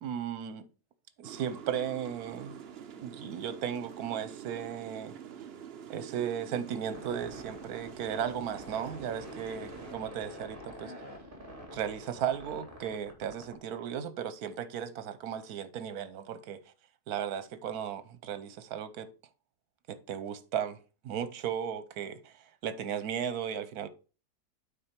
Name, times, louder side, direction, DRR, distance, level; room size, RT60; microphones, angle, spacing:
voice 1, 0.0-0.6 1.2-2.6 3.0-5.2 5.9-10.9 11.7-16.6 17.1-19.1 19.9-23.9, right 8 dB, 80° right, 1.3 m, -36 dB
sound 1, 1.2-10.0, right 8 dB, 55° right, 0.8 m, -46 dB
sound 2, 6.9-13.5, equal, 35° right, 2.2 m, -46 dB
8.9 x 4.1 x 4.4 m
omnidirectional pair, 1.6 m